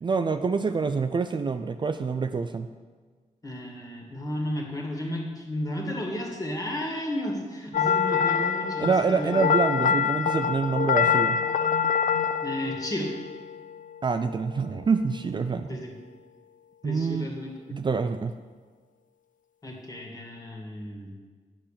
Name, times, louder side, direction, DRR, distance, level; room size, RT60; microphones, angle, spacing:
voice 1, 0.0-2.7 8.8-11.4 14.0-15.8 16.8-17.3 17.7-18.3, right 5 dB, 35° right, 8 dB, 0.4 m, -26 dB
voice 2, 3.4-9.5 12.4-13.1 15.7-15.9 16.8-17.8 19.6-21.1, left 1 dB, 25° left, 0 dB, 2.0 m, -33 dB
sound 1, 7.7-14.0, left 7 dB, 80° left, 0.5 m, -25 dB
9.0 x 7.3 x 6.7 m, 1.5 s
wide cardioid pair, 120°, 13 cm